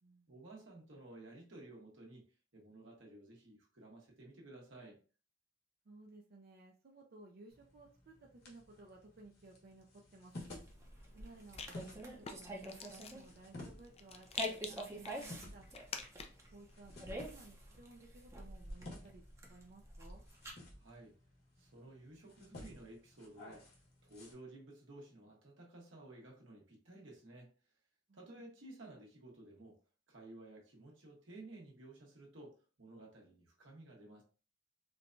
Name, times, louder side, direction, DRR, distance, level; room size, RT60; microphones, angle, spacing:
voice 1, 0.3-2.2 2.5-5.0 20.7-21.1 21.6-27.5 28.1-29.8 30.1-34.2, right 2 dB, 80° right, -2 dB, 1.2 m, -55 dB
voice 2, 5.8-10.5 11.1-12.6 12.9-15.7 16.5-19.2 19.5-20.2 28.1-28.4, right 2 dB, 55° right, 0 dB, 0.5 m, -58 dB
sound 1, 7.5-24.3, left 1 dB, 55° left, 1.2 m, -55 dB
sound 2, 10.4-13.3 13.6-13.8 14.3-20.5, equal, 15° right, 0.7 m, -46 dB
Rattle, 10.5-16.5, left 5 dB, 35° left, 0.4 m, -49 dB
4.4 x 2.2 x 2.5 m, 0.37 s
head